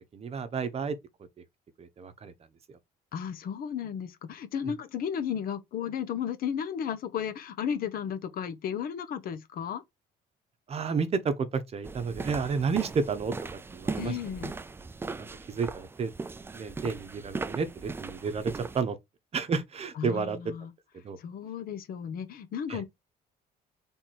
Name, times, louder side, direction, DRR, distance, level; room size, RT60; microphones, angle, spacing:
voice 1, 0.1-1.0 1.8-2.3 4.6-4.7 10.7-13.3 13.7-14.2 15.1-16.1 16.5-19.0 19.3-20.4 21.0-21.2 22.7-22.8, right 5 dB, 35° right, 0.8 m, -31 dB
voice 2, 3.1-9.8 14.0-14.5 20.0-20.7 21.2-22.8, left 8 dB, 60° left, 0.8 m, -34 dB
sound 1, 11.8-18.8, right 4 dB, 15° right, 0.3 m, -38 dB
3.5 x 3.1 x 4.1 m
cardioid pair, 110°, 17 cm